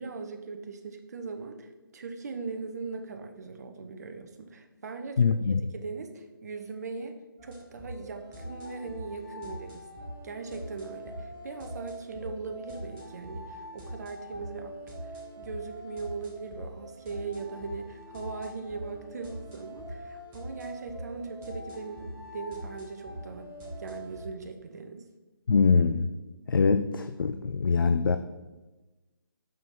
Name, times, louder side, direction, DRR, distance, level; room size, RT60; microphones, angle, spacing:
voice 1, 0.0-5.4 5.7-7.2 7.4-9.9 10.2-25.0, right 4 dB, 45° right, 5 dB, 0.9 m, -40 dB
voice 2, 5.2-5.6 25.5-26.1 26.5-28.2, left 5 dB, 65° left, 10 dB, 0.4 m, -23 dB
sound 1, 7.4-24.2, equal, 15° right, 1.9 m, -43 dB
6.2 x 5.5 x 4.7 m, 1.2 s
figure-of-eight pair, 150°, 12 cm